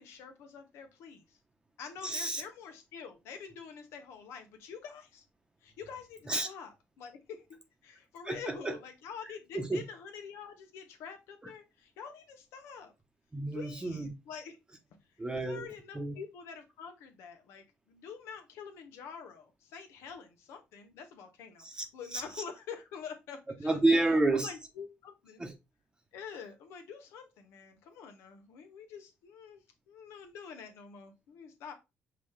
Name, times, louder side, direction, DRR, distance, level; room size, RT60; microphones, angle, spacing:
voice 1, 0.0-1.4 1.8-5.2 5.6-12.9 13.5-14.6 15.3-23.8 24.4-25.5 26.1-29.6 29.9-31.7, left 6 dB, 85° left, 1.1 m, -47 dB
voice 2, 2.0-2.4 6.3-6.5 8.2-8.7 9.5-9.8 13.3-14.1 15.2-15.7 15.9-16.1 21.6-21.8 22.1-22.2 23.6-24.5 25.4-25.5, right 2 dB, 20° right, 0.9 m, -29 dB
5.4 x 2.9 x 3.2 m
cardioid pair, 85°, 4 cm